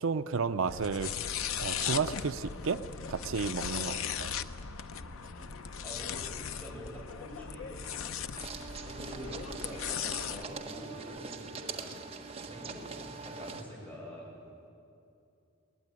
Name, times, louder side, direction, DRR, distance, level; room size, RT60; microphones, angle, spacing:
voice 1, 0.0-1.1 1.6-2.8 3.1-4.3, right 5 dB, 75° right, 11 dB, 0.5 m, -32 dB
sound 1, 0.7-10.4, left 7 dB, 80° left, 0.7 m, -38 dB
voice 2, 4.9-8.1 8.8-12.0 12.4-14.3, equal, 10° left, -4 dB, 7.4 m, -46 dB
sound 2, 8.4-13.6, right 4 dB, 30° right, 1.4 m, -43 dB
21.5 x 19.0 x 9.7 m, 2.6 s
head